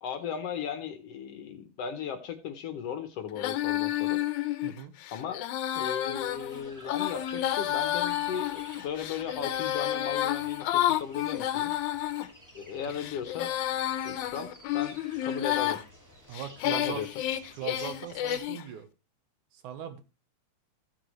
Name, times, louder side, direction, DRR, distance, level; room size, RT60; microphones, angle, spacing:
voice 1, 0.0-4.2 5.1-5.4 5.8-11.8 12.6-13.5 14.0-15.8 16.7-17.1, left 8 dB, 65° left, 8 dB, 1.8 m, -36 dB
Female singing, 3.4-12.3 12.8-15.8 16.3-18.6, left 13 dB, 85° left, 2.1 m, -30 dB
voice 2, 4.6-4.9 16.3-17.1 17.5-18.9 19.5-20.0, right 10 dB, 85° right, 9 dB, 2.6 m, -39 dB
sound 1, 6.1-18.4, equal, 10° right, 1.3 m, -51 dB
14.5 x 7.5 x 3.1 m, 0.29 s
omnidirectional pair, 3.4 m